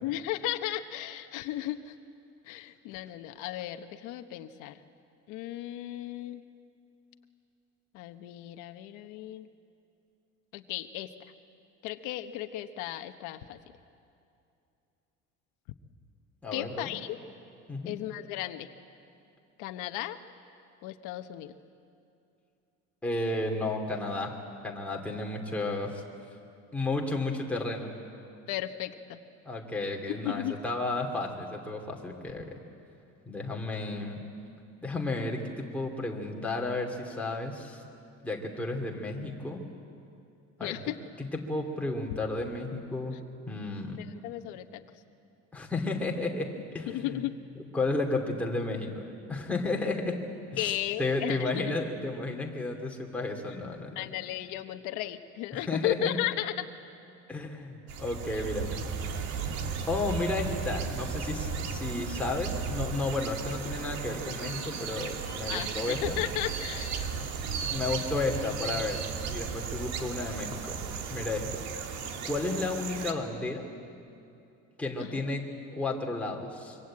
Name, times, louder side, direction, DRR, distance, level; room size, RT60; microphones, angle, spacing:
voice 1, 0.0-1.9 2.4-4.8 5.3-6.4 7.9-9.5 10.5-11.1 11.8-13.6 16.5-17.2 17.8-18.7 19.6-20.2 20.8-21.6 28.5-29.2 30.2-30.5 40.6-41.0 44.0-44.8 46.9-47.4 50.6-51.8 54.0-56.7 58.3-58.4 65.5-67.2 75.0-75.2, left 13 dB, 85° left, 8 dB, 1.2 m, -35 dB
voice 2, 16.4-16.9 17.7-17.9 23.0-24.3 24.6-26.0 26.7-27.9 29.4-32.6 33.3-34.2 34.8-37.8 38.2-39.6 40.6-40.7 41.2-43.1 43.5-44.0 45.5-47.2 47.7-50.2 50.5-53.9 55.7-56.2 57.3-58.8 59.9-66.2 67.7-69.0 69.3-70.8 71.1-71.6 72.2-73.6 74.8-75.4 75.7-76.8, left 2 dB, 5° left, 0 dB, 2.7 m, -32 dB
sound 1, 57.9-73.1, right 5 dB, 65° right, 2.2 m, -35 dB
25.5 x 24.0 x 8.7 m, 2.6 s
cardioid pair, 160°, 30 cm